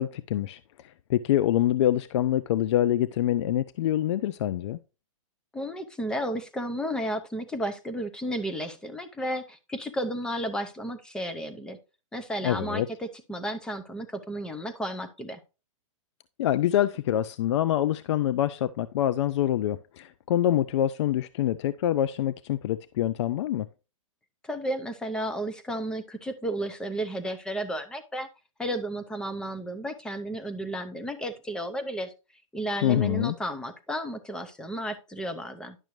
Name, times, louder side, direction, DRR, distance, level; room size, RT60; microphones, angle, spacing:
voice 1, 0.0-4.8 12.4-12.9 16.4-23.7 32.8-33.4, left 12 dB, 55° left, 0.4 m, -25 dB
voice 2, 5.5-11.8 12.1-15.4 24.4-28.3 28.6-32.1 32.5-35.8, equal, 5° left, 0.6 m, -33 dB
10.5 x 6.1 x 3.1 m
hypercardioid pair, 145°, 17 cm